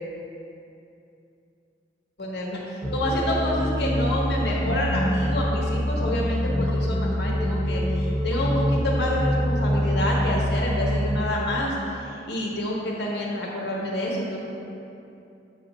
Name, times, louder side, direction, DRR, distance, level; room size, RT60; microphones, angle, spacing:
voice 1, 2.2-14.4, equal, 60° left, -3 dB, 1.1 m, -28 dB
sound 1, 2.8-11.0, equal, 5° left, 0.7 m, -25 dB
7.8 x 3.0 x 5.5 m, 2.7 s
head